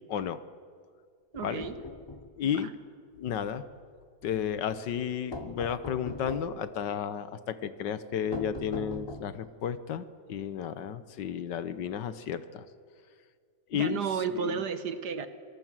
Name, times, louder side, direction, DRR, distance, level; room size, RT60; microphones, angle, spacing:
voice 1, 0.1-0.4 1.4-1.7 2.4-2.7 3.1-3.6 4.2-12.6 13.7-14.0 14.3-14.6, left 8 dB, 75° left, 14 dB, 1.6 m, -33 dB
sound 1, 1.3-2.3 5.3-6.6 8.3-9.5, left 2 dB, 45° left, 0.3 m, -40 dB
voice 2, 1.3-1.8 2.5-2.7 13.7-15.3, right 6 dB, 65° right, 11 dB, 1.7 m, -32 dB
26.0 x 18.5 x 7.6 m, 2.1 s
omnidirectional pair, 2.0 m